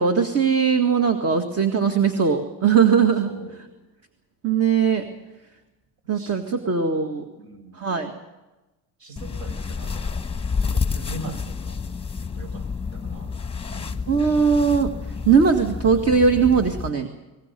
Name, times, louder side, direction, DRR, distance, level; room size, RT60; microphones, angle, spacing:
voice 1, 0.0-3.3 4.4-5.1 6.1-7.3 7.8-8.1 14.1-14.9 15.3-17.1, right 6 dB, 35° right, 6 dB, 2.0 m, -19 dB
voice 2, 3.3-3.6 6.1-6.8 7.4-7.9 9.0-10.1 10.7-11.8 12.2-13.4 13.7-14.1, right 3 dB, 60° right, 6 dB, 5.2 m, -41 dB
sound 1, 9.2-16.9, left 5 dB, 15° left, 1.1 m, -29 dB
23.0 x 20.0 x 6.9 m, 1.1 s
cardioid pair, 105°, 41 cm